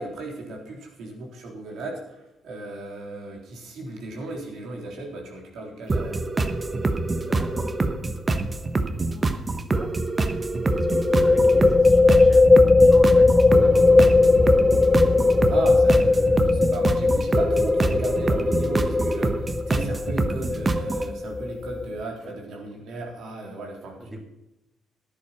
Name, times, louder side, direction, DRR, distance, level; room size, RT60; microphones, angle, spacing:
voice 1, 0.0-6.2 15.5-24.2, right 2 dB, 75° right, 0 dB, 3.7 m, -35 dB
sound 1, 5.9-21.1, right 3 dB, 30° right, 1.0 m, -26 dB
voice 2, 7.2-7.7 8.8-10.0 10.8-14.2 22.2-22.4 24.0-24.2, equal, 10° right, 3 dB, 2.1 m, -40 dB
sound 2, 7.5-8.1 10.7-22.0, left 3 dB, 20° left, 0.6 m, -19 dB
11.5 x 9.9 x 5.8 m, 0.90 s
cardioid pair, 90°, 0 cm